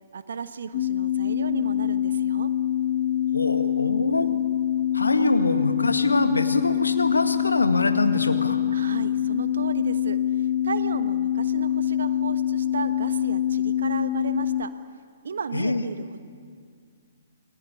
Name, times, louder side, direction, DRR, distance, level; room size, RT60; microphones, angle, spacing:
voice 1, 0.1-2.5 8.7-14.7 15.2-16.2, right 5 dB, 60° right, 11 dB, 1.3 m, -34 dB
sound 1, 0.7-14.6, left 11 dB, 40° left, 1.8 m, -25 dB
voice 2, 3.3-4.3 4.9-8.6 15.5-15.8, left 2 dB, 75° left, 7 dB, 1.9 m, -24 dB
29.5 x 21.5 x 8.6 m, 2.1 s
figure-of-eight pair, 125°, 0 cm